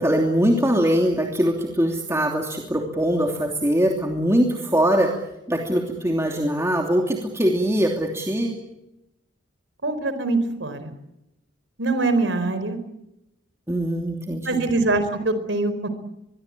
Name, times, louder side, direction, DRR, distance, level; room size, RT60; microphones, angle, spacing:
voice 1, 0.0-5.1 5.5-8.6 13.7-14.7, equal, 15° right, 1 dB, 2.9 m, -22 dB
voice 2, 9.8-10.9 11.8-12.8 14.5-15.9, right 2 dB, 70° right, 11 dB, 4.5 m, -23 dB
24.5 x 23.0 x 8.6 m, 0.87 s
head